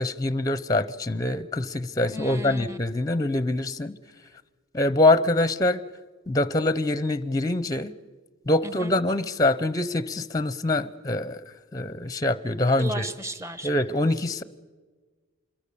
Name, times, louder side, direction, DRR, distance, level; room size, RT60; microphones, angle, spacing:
voice 1, 0.0-3.9 4.7-5.8 6.3-7.9 8.5-11.4 11.7-13.0 13.6-14.4, left 2 dB, 15° left, 16 dB, 0.6 m, -24 dB
voice 2, 2.0-2.8 8.6-8.9 12.8-13.7, right 1 dB, 15° right, 12 dB, 1.0 m, -35 dB
26.0 x 22.0 x 7.0 m, 1.4 s
head